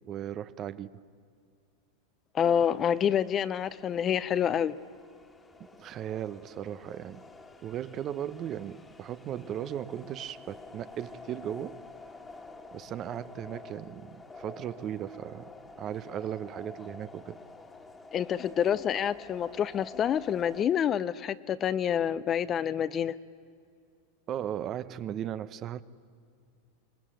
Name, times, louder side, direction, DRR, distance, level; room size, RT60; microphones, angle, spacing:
voice 1, 0.1-0.9 5.8-7.2 7.6-11.8 12.7-17.4 24.3-25.8, right 10 dB, 35° right, 0.8 m, -37 dB
voice 2, 2.3-4.8 18.1-23.1, left 9 dB, 30° left, 0.6 m, -27 dB
sound 1, 2.6-20.6, left 3 dB, 15° left, 1.8 m, -49 dB
25.0 x 20.0 x 8.9 m
hypercardioid pair, 120°, 0 cm